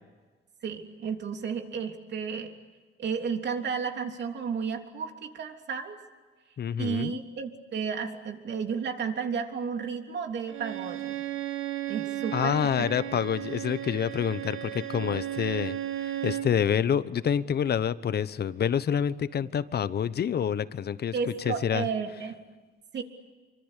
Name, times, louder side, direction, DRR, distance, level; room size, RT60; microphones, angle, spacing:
voice 1, 0.6-2.5 3.0-6.0 6.8-11.2 11.9-13.2 19.4-19.5 21.1-22.3 22.9-23.0, right 6 dB, 60° right, 4 dB, 3.3 m, -33 dB
voice 2, 6.6-7.2 12.3-21.1 21.4-21.9, left 8 dB, 55° left, 15 dB, 1.1 m, -27 dB
Bowed string instrument, 10.5-16.6, right 12 dB, 80° right, 2.0 m, -34 dB
26.5 x 24.5 x 8.3 m, 1.4 s
cardioid pair, 90°, 20 cm